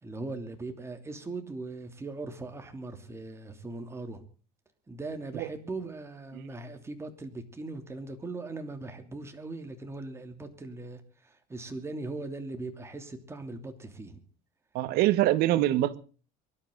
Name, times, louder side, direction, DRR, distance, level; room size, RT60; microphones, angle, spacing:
voice 1, 0.0-4.2 4.9-14.2, right 3 dB, 15° right, 2.9 m, -39 dB
voice 2, 14.7-16.0, right 15 dB, 70° right, 1.2 m, -25 dB
24.0 x 12.0 x 3.9 m
cardioid pair, 120°, 16 cm